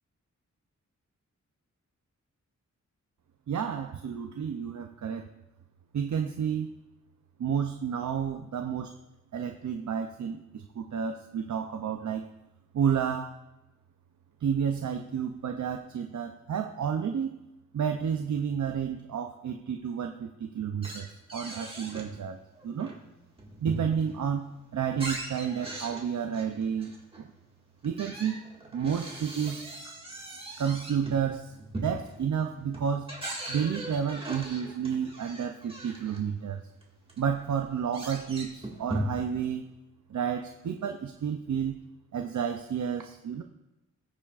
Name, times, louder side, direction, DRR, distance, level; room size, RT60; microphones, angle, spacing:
voice 1, 3.5-5.3 5.9-6.7 7.4-8.9 9.3-12.3 12.7-13.3 14.4-17.4 17.7-22.4 22.6-22.9 23.6-27.3 27.8-28.5 28.7-29.9 30.6-33.1 33.5-36.6 37.2-39.7 40.1-41.8 42.1-43.4, right 7 dB, 70° right, 5 dB, 0.6 m, -31 dB
sound 1, 20.8-22.1 22.5-24.2 24.6-27.2 27.8-36.2 36.8-36.9 37.1-39.4, right 1 dB, 20° right, 1.9 m, -39 dB
19.5 x 7.1 x 2.5 m, 0.99 s
wide cardioid pair, 140°, 30 cm